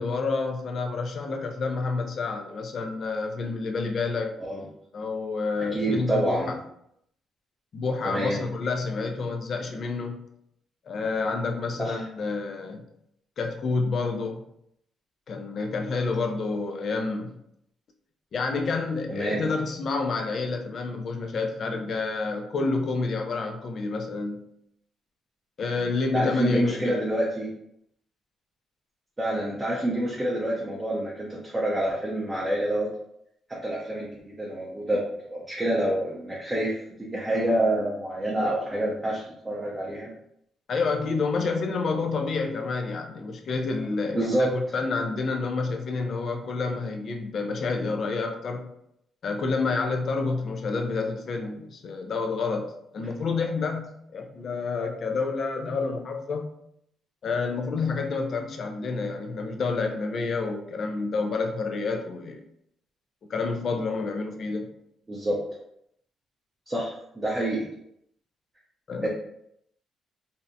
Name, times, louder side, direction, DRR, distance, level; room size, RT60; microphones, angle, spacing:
voice 1, 0.0-4.3 4.9-6.4 7.7-10.3 10.9-12.9 13.4-14.4 15.3-17.4 18.3-24.5 25.6-27.0 40.7-48.7 49.2-56.5 57.2-62.4 63.3-64.7 68.9-69.1, left 4 dB, 55° left, 4 dB, 0.4 m, -29 dB
voice 2, 5.7-6.6 8.0-8.4 11.8-12.0 19.1-19.4 26.1-27.5 29.2-32.9 33.5-35.0 35.3-40.1 44.1-44.5 65.1-65.4 66.7-67.7 69.0-69.1, right 1 dB, 20° right, -5 dB, 0.6 m, -27 dB
2.6 x 2.0 x 2.5 m, 0.75 s
cardioid pair, 90°, 0 cm